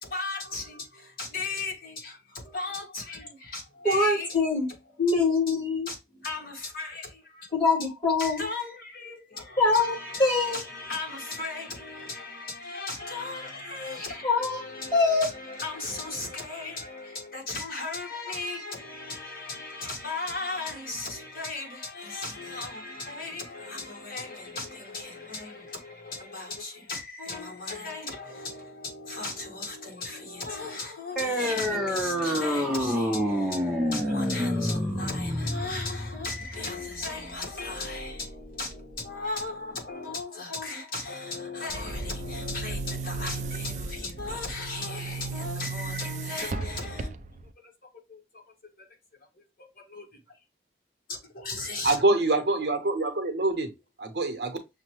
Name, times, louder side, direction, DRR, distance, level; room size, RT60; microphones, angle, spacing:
voice 1, 0.0-4.3 5.9-7.5 8.2-47.1 48.1-48.2 49.9-50.1 51.1-52.0, left 3 dB, 50° left, 1.4 m, -36 dB
voice 2, 3.8-4.7 5.0-5.9 7.5-8.5 9.6-10.6 14.2-14.6 14.9-15.3, left 3 dB, 30° left, 1.8 m, -24 dB
sound 1, 31.2-38.2, equal, 5° right, 0.6 m, -28 dB
Boom, 41.7-47.5, right 4 dB, 40° right, 0.3 m, -35 dB
voice 3, 51.8-53.7 54.0-54.6, right 2 dB, 65° right, 0.8 m, -25 dB
6.2 x 2.1 x 2.9 m
head